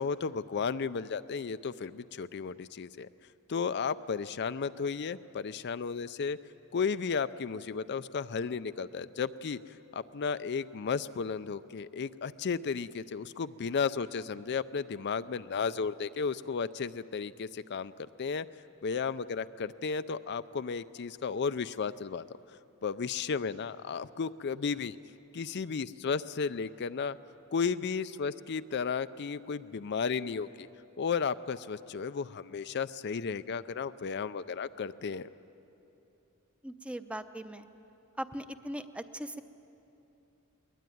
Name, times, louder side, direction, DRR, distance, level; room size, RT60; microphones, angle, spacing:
voice 1, 0.0-3.1 3.5-6.4 6.7-18.5 18.8-22.2 22.8-25.0 25.3-27.2 27.5-30.7 31.0-35.3, left 5 dB, 50° left, 13 dB, 0.5 m, -34 dB
voice 2, 36.6-37.7 38.2-39.4, right 1 dB, 5° right, 10 dB, 0.7 m, -39 dB
22.0 x 20.0 x 9.3 m, 2.9 s
head